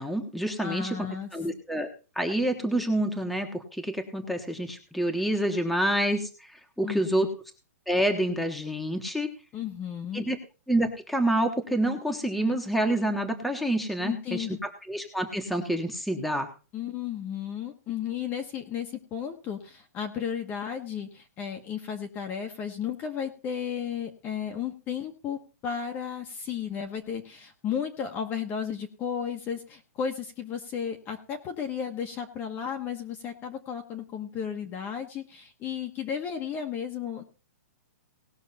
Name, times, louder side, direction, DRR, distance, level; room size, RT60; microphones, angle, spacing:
voice 1, 0.0-1.9 2.1-6.3 6.8-7.3 7.9-9.3 10.1-10.4 10.7-14.6 14.9-16.5, right 1 dB, ahead, 4 dB, 1.3 m, -27 dB
voice 2, 0.6-1.3 6.8-7.3 9.5-10.3 14.0-14.6 16.7-37.2, left 8 dB, 20° left, 5 dB, 1.2 m, -34 dB
18.5 x 6.3 x 4.2 m, 0.33 s
hypercardioid pair, 165°, 9 cm